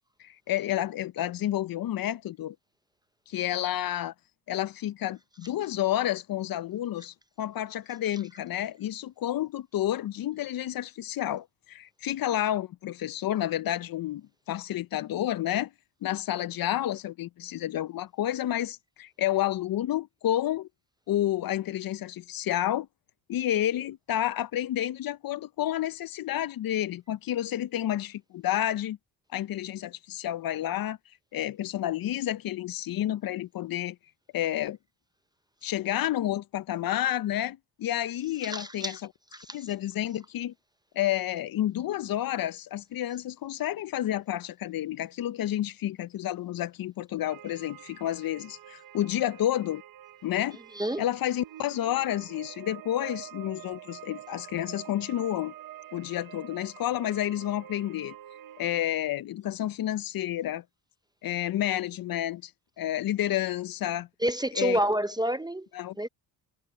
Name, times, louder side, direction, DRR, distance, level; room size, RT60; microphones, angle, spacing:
voice 1, 0.2-2.6 3.3-4.1 4.5-15.7 16.0-20.7 21.1-22.9 23.3-29.0 29.3-31.0 31.3-34.0 34.3-34.8 35.6-39.0 39.5-40.5 40.9-49.8 50.2-50.6 51.0-55.5 55.9-58.2 58.6-60.6 61.2-62.5 62.8-64.1 64.6-64.8 65.7-65.9, left 12 dB, 55° left, 0.6 m, -30 dB
voice 2, 38.4-39.0 39.3-39.7 50.7-51.0 64.2-65.7 66.0-66.1, right 1 dB, 10° right, 0.6 m, -29 dB
sound 1, 47.2-58.8, right 13 dB, 50° right, 0.9 m, -47 dB
cardioid pair, 100°, 43 cm